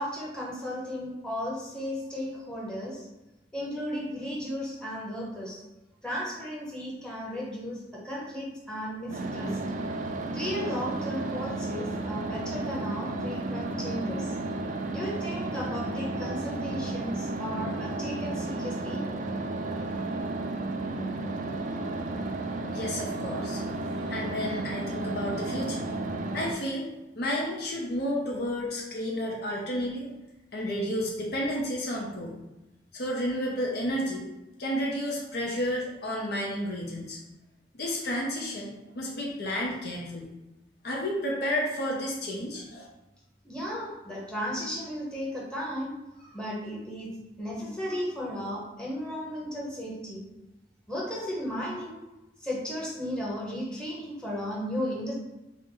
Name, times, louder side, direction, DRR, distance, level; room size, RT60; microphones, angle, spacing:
voice 1, 0.0-3.1 3.5-5.6 6.0-9.6 10.3-14.3 14.9-19.1 43.4-47.1 47.4-50.2 50.9-52.0 52.4-55.1, equal, 5° left, -5 dB, 0.9 m, -35 dB
sound 1, 9.1-26.5, right 2 dB, 45° right, 0.3 m, -33 dB
voice 2, 22.7-23.6 24.0-25.9 26.3-26.9 27.2-30.1 30.5-32.3 32.9-34.2 34.6-37.2 37.7-40.3 40.8-42.9, equal, 65° left, -2 dB, 0.7 m, -31 dB
4.1 x 2.1 x 3.8 m, 1.0 s
head